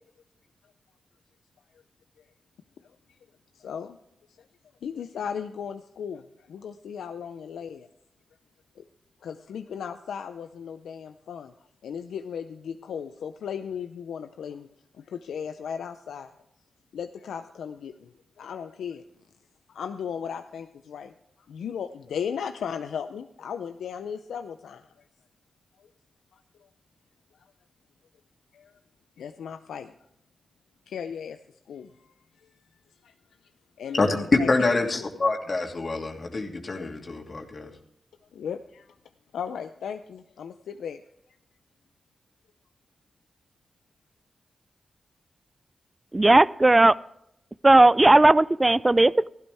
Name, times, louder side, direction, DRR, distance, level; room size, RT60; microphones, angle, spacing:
voice 1, 3.5-4.0 4.8-7.9 8.8-8.9 9.2-11.5 11.8-14.7 14.9-16.3 16.9-19.0 19.7-21.1 21.5-24.9 28.5-28.7 29.2-29.9 30.9-31.4 31.7-32.5 33.0-33.1 33.8-34.9 38.3-38.9 39.3-41.0, left 7 dB, 90° left, 0.5 m, -36 dB
voice 2, 33.9-37.7, left 3 dB, 50° left, 2.7 m, -25 dB
voice 3, 46.1-47.0 47.6-49.3, right 2 dB, 25° right, 0.5 m, -16 dB
15.5 x 12.0 x 3.5 m
cardioid pair, 50°, 0 cm